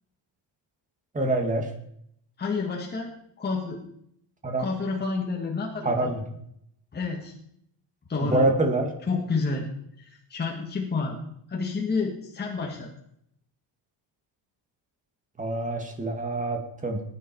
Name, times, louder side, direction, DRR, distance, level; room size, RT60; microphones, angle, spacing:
voice 1, 1.1-1.7 4.4-4.7 5.8-6.2 8.2-8.9 15.4-17.0, right 2 dB, 15° right, 3 dB, 2.3 m, -26 dB
voice 2, 2.4-3.8 4.6-6.1 6.9-7.3 8.1-8.5 9.1-9.7 10.0-11.2 11.5-12.9, left 4 dB, 20° left, 0 dB, 1.8 m, -29 dB
20.0 x 9.5 x 4.6 m, 0.72 s
cardioid pair, 150°, 45 cm